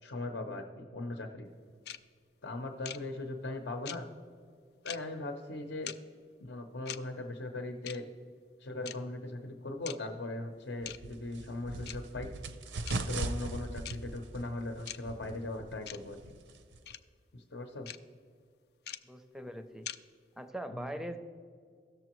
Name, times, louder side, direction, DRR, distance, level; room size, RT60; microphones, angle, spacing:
voice 1, 0.0-1.5 2.4-4.0 4.8-5.9 6.4-8.1 8.6-12.3 13.0-16.3 17.3-17.9 20.7-20.9, left 2 dB, 75° left, 4 dB, 0.8 m, -39 dB
sound 1, 1.9-2.0 2.8-3.0 3.9-4.0 4.9-5.0 5.9-6.0 6.9-7.0 7.9-8.0 8.9-9.0 9.9-10.0 10.9-11.0 11.9-12.0 12.9-13.0 13.8-14.0 14.9-15.0 15.9-16.0 16.9-17.0 17.9-18.0 18.9-19.0 19.9-20.0, left 11 dB, 60° left, 0.4 m, -40 dB
sound 2, 10.8-17.0, right 2 dB, 75° right, 0.6 m, -40 dB
voice 2, 19.0-19.9 20.4-21.2, right 1 dB, 5° right, 7 dB, 0.4 m, -41 dB
16.5 x 6.8 x 3.0 m, 2.2 s
head